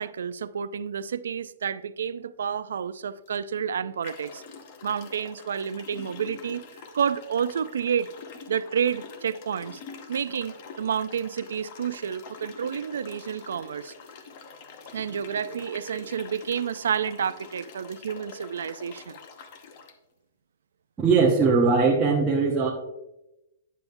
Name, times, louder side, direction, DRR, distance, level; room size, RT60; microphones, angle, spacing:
voice 1, 0.0-4.4 4.8-8.1 8.5-9.8 10.1-13.9 14.9-19.2, right 7 dB, 90° right, 0.3 m, -30 dB
sound 1, 3.3-3.4 4.0-19.9, left 5 dB, 40° left, 0.8 m, -46 dB
voice 2, 21.0-22.7, right 4 dB, 10° right, 0.8 m, -20 dB
9.2 x 7.0 x 2.6 m
hypercardioid pair, 165°, 0 cm